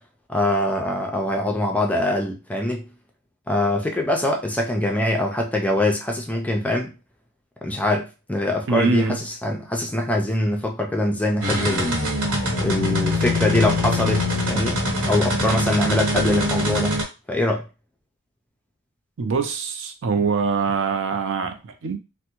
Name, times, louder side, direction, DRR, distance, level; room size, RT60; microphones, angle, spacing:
voice 1, 0.3-2.9 3.5-6.9 7.6-12.0 12.6-14.8 15.1-17.0 17.3-17.7, left 1 dB, 5° left, 0.4 m, -23 dB
voice 2, 8.7-9.2 19.2-22.0, right 5 dB, 60° right, 0.5 m, -23 dB
sound 1, 11.4-17.0, left 1 dB, 75° right, 1.2 m, -23 dB
3.4 x 2.1 x 2.9 m
head